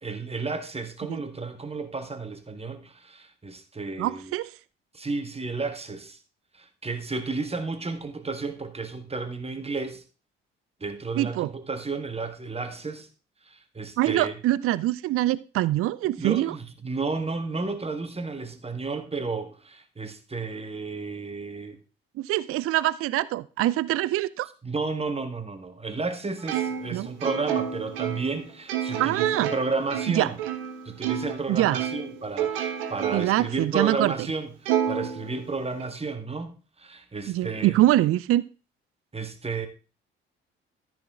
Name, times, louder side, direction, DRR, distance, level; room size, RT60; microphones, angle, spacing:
voice 1, 0.0-4.4 4.9-6.2 6.6-10.0 10.8-13.1 13.5-14.3 16.2-21.8 24.6-30.4 30.8-37.8 39.1-39.7, right 4 dB, 20° right, 1.6 m, -32 dB
voice 2, 4.0-4.5 11.2-11.5 14.0-16.5 22.2-24.5 26.9-27.1 29.0-29.5 30.1-30.3 31.5-31.8 33.1-34.3 37.3-38.4, right 15 dB, 50° right, 0.5 m, -24 dB
Plucked string instrument, 26.5-31.4 31.7-33.5 33.9-34.0 34.7-35.8, right 9 dB, 75° right, 1.2 m, -30 dB
13.5 x 6.1 x 3.6 m
figure-of-eight pair, 45°, 30 cm